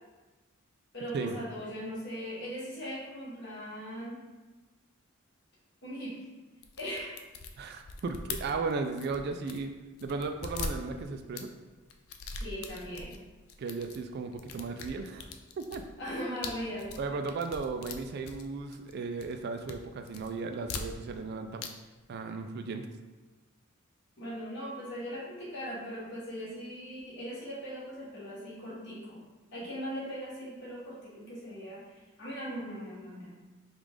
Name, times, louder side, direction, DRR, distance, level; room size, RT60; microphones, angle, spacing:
voice 1, 0.9-4.2 5.8-6.2 6.8-7.2 12.4-13.1 16.0-16.9 24.2-29.2 29.5-33.3, equal, 55° left, -7 dB, 1.5 m, -39 dB
sound 1, 6.6-9.7 10.0-11.5 11.9-13.2 13.5-14.0 14.3-18.9 19.2-19.8 20.1-21.3 21.6-21.7 22.0-22.1, left 4 dB, 85° left, 0.4 m, -41 dB
voice 2, 7.6-9.7 10.0-11.5 13.6-15.3 15.6-15.9 17.0-21.6 22.1-22.9, right 4 dB, 50° right, 6 dB, 0.3 m, -35 dB
4.9 x 2.4 x 3.6 m, 1.2 s
head